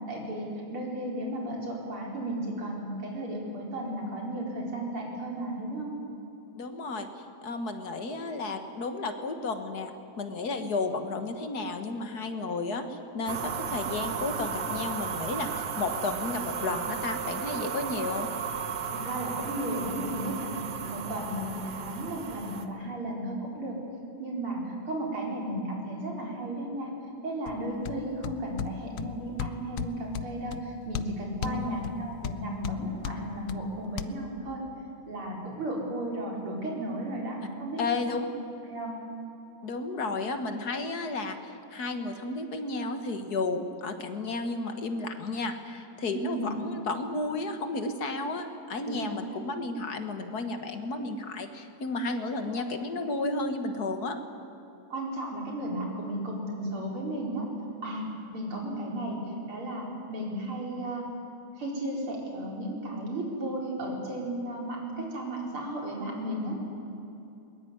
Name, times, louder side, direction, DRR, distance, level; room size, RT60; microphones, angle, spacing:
voice 1, 0.1-5.9 18.9-20.6 20.9-23.8 24.2-26.9 27.2-34.6 35.1-38.1 38.7-39.0 46.1-46.5 48.8-49.1 52.3-52.6 54.9-57.5 57.8-58.1 58.3-61.1 61.6-66.6, right 1 dB, 80° right, -1 dB, 5.4 m, -34 dB
voice 2, 6.6-7.1 7.4-18.3 31.4-31.8 37.8-38.3 39.6-54.2, left 3 dB, 50° left, 7 dB, 1.9 m, -32 dB
sound 1, 13.3-22.7, right 7 dB, 55° right, 1.8 m, -34 dB
sound 2, 27.5-34.1, left 9 dB, 75° left, 1.6 m, -38 dB
22.0 x 21.0 x 9.5 m, 2.8 s
omnidirectional pair, 2.3 m